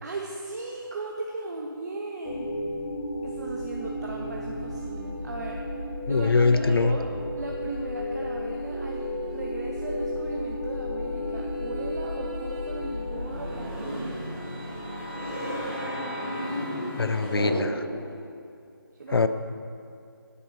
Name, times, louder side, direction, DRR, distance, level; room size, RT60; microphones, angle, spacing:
voice 1, 0.0-2.5 3.2-5.6 6.1-7.1 7.4-14.2 18.9-19.2, right 2 dB, 45° right, 0 dB, 0.7 m, -37 dB
sound 1, 2.2-13.7, left 1 dB, 60° left, 1.2 m, -33 dB
sound 2, 4.1-7.6 8.6-18.2, equal, 10° right, 0.7 m, -45 dB
voice 2, 6.1-7.0 17.0-17.9 19.1-19.3, left 4 dB, 80° left, 11 dB, 0.5 m, -22 dB
sound 3, 12.8-18.1, equal, 30° right, 1.8 m, -33 dB
8.2 x 5.2 x 6.0 m, 2.5 s
figure-of-eight pair, 160°, 12 cm